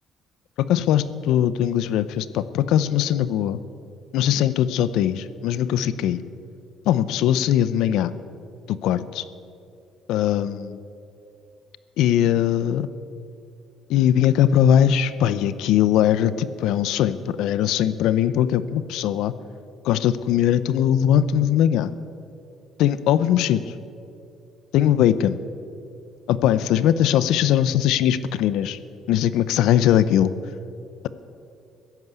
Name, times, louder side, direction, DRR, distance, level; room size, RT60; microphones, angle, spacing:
voice 1, 0.7-3.6 4.1-6.2 6.9-8.1 8.7-9.2 10.1-10.8 12.0-12.9 13.9-19.3 19.8-21.9 22.8-23.7 24.7-25.4 26.3-28.8 29.1-30.3, left 10 dB, 80° left, 15 dB, 0.6 m, -20 dB
15.5 x 10.5 x 8.2 m, 2.6 s
cardioid pair, 125°, 0 cm